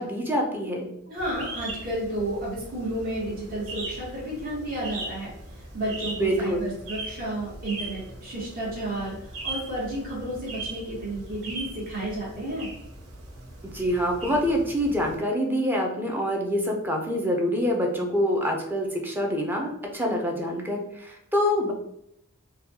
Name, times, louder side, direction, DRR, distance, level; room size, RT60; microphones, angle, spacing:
voice 1, 0.0-0.9 6.2-6.7 13.7-21.7, equal, 10° right, 1 dB, 0.5 m, -26 dB
voice 2, 1.1-5.3 5.7-12.7, right 1 dB, 45° right, -5 dB, 1.3 m, -32 dB
sound 1, 1.2-15.2, right 2 dB, 80° right, 0.9 m, -39 dB
4.0 x 2.3 x 2.7 m, 0.79 s
head